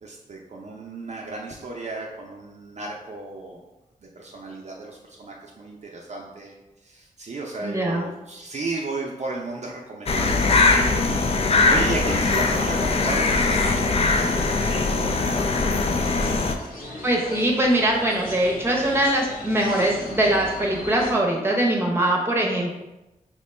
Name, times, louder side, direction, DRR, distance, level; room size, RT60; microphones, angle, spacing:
voice 1, 0.0-3.6 4.2-6.5 6.8-15.9 16.4-16.9, right 2 dB, 50° right, -2 dB, 0.5 m, -34 dB
voice 2, 7.6-8.0 17.0-22.8, right 1 dB, 15° right, -1 dB, 0.8 m, -22 dB
sound 1, 10.1-16.5, left 3 dB, 45° left, 0.4 m, -21 dB
sound 2, 15.8-21.1, left 1 dB, 80° left, 0.8 m, -38 dB
3.0 x 2.2 x 4.1 m, 1.0 s
cardioid pair, 65°, 15 cm